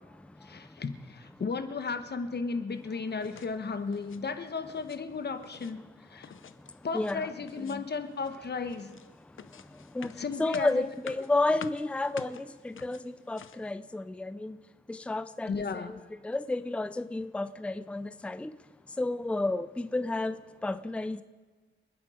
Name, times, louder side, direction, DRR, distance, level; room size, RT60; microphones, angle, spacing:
voice 1, 0.4-5.8 6.1-6.3 6.8-8.9 10.2-10.8 15.5-15.9, left 4 dB, 55° left, 9 dB, 1.2 m, -34 dB
sound 1, 3.2-3.6 3.9-4.2 4.6-5.0 5.3-5.7 6.2-7.2 7.5-7.9 8.2-13.7, left 8 dB, 75° left, 0.7 m, -48 dB
voice 2, 6.9-7.3 7.6-7.8 10.0-10.1 10.4-14.6 14.9-16.0 16.2-18.5 19.0-20.4 20.6-21.2, left 2 dB, 5° left, 13 dB, 0.5 m, -31 dB
28.5 x 9.9 x 5.0 m, 1.4 s
wide cardioid pair, 130°, 21 cm